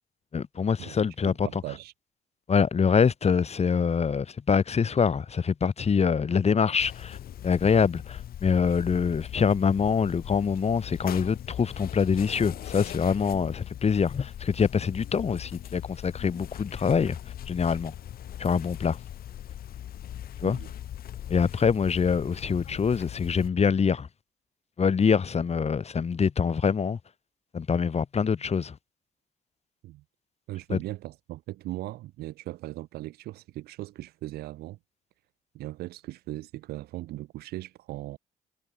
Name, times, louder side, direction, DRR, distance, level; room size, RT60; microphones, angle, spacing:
voice 1, 0.3-1.5 2.5-7.2 7.4-17.2 17.5-17.9 18.4-19.0 20.4-20.6 21.3-24.1 24.8-27.0 27.5-28.8 30.7-30.8, left 6 dB, 40° left, 1.6 m, -25 dB
voice 2, 1.2-1.9 20.4-20.7 29.8-30.0 30.5-34.8 35.5-38.2, right 16 dB, 85° right, 3.5 m, -38 dB
sound 1, 6.8-23.5, left 11 dB, 70° left, 6.8 m, -40 dB
supercardioid pair, 60°, 16 cm